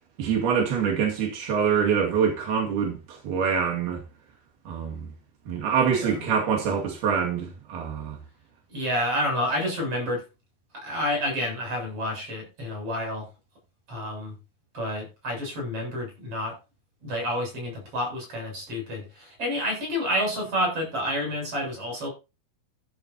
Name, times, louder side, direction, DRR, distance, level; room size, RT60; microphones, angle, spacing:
voice 1, 0.2-4.0 4.7-5.1 5.5-8.2, right 7 dB, 85° right, 4.3 m, -25 dB
voice 2, 5.8-6.2 8.7-10.2 10.7-13.3 13.9-14.3 14.7-16.6 17.0-22.1, equal, 40° right, 8.9 m, -29 dB
14.5 x 11.5 x 2.9 m
omnidirectional pair, 4.3 m